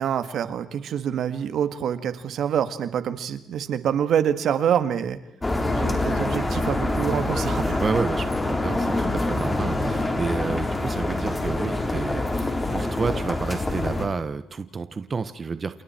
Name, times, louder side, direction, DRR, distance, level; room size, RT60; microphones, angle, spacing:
voice 1, 0.0-5.2 5.7-7.8, right 9 dB, 70° right, 11 dB, 1.9 m, -26 dB
sound 1, 5.4-14.1, left 2 dB, 20° left, 4.1 m, -25 dB
voice 2, 7.8-15.8, right 4 dB, 35° right, 11 dB, 1.3 m, -30 dB
29.0 x 29.0 x 4.6 m, 0.81 s
cardioid pair, 90°, 0 cm